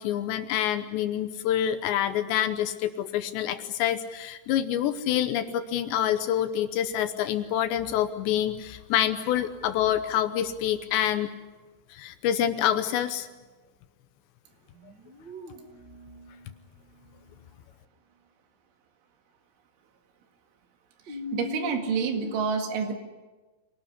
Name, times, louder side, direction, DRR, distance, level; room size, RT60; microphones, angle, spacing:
voice 1, 0.0-11.3 11.9-13.3, left 11 dB, 75° left, 10 dB, 2.9 m, -27 dB
sound 1, 14.7-17.4 21.1-22.3, left 5 dB, 35° right, 1.8 m, -41 dB
voice 2, 21.1-23.0, right 6 dB, 75° right, 5 dB, 4.4 m, -28 dB
25.5 x 18.5 x 9.8 m, 1.2 s
omnidirectional pair, 5.6 m